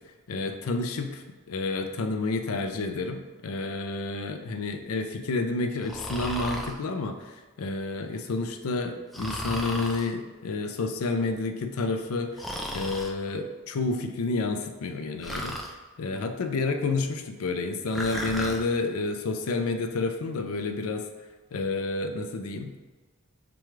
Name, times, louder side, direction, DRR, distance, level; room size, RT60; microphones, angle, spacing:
voice 1, 0.3-12.4 12.7-15.6 16.0-21.1 21.5-22.9, left 3 dB, 75° left, 6 dB, 0.4 m, -30 dB
Breathing, 5.8-6.8 9.1-10.1 12.4-13.1 15.2-15.7 17.9-18.6, equal, ahead, 0.3 m, -34 dB
6.0 x 2.3 x 3.1 m, 1.3 s
head